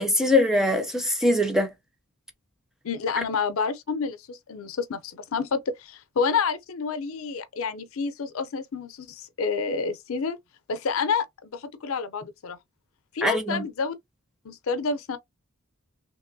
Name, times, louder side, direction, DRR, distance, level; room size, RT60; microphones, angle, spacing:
voice 1, 0.0-1.7 13.2-13.6, left 1 dB, ahead, 0.5 m, -22 dB
voice 2, 2.8-10.4 10.7-12.6 13.1-13.9 14.4-15.2, left 5 dB, 70° left, 0.5 m, -29 dB
2.9 x 2.9 x 2.5 m
head